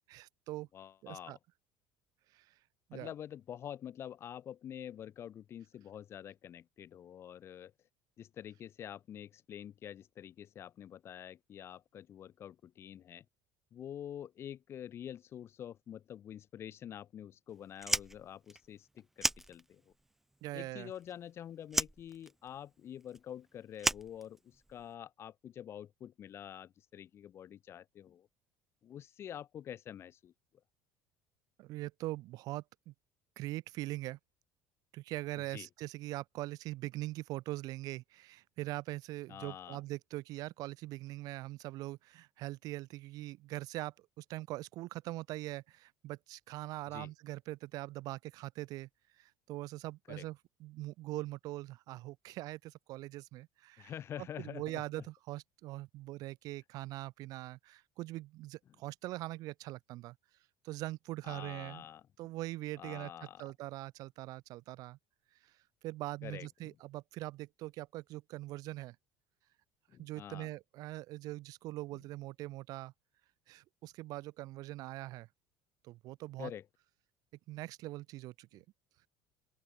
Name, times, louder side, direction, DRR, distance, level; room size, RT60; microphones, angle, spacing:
voice 1, 0.1-0.7 1.0-1.4 2.3-2.5 2.9-3.1 20.4-20.9 31.6-32.9 33.4-34.2 34.9-48.9 49.2-53.9 54.2-60.2 60.6-61.8 62.2-65.0 65.8-69.0 70.0-72.9 73.5-75.3 75.8-76.5 77.5-78.6, right 18 dB, 60° right, 3.9 m, -42 dB
voice 2, 0.7-1.4 2.9-7.7 8.2-13.2 13.7-19.9 20.5-28.3 28.8-30.3 35.5-35.7 39.3-39.8 46.9-47.1 50.1-50.3 53.8-54.8 61.2-62.0 62.8-63.5 66.2-66.7 69.9-70.5 76.4-76.6, left 10 dB, 35° left, 4.5 m, -47 dB
Fire, 17.8-20.1 20.3-21.3 21.7-24.9, right 1 dB, 5° right, 0.9 m, -35 dB
open air
cardioid pair, 155°, 7 cm